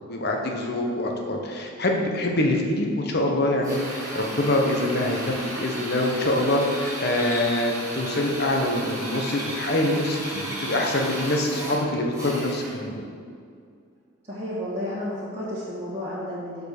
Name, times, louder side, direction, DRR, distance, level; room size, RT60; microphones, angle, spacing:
voice 1, 0.1-13.0, left 1 dB, 50° left, 1 dB, 1.0 m, -25 dB
Drill, 3.6-12.9, right 1 dB, 15° right, 2.2 m, -34 dB
voice 2, 14.3-16.7, left 1 dB, 30° right, -10 dB, 1.7 m, -32 dB
6.8 x 5.3 x 6.6 m, 2.2 s
head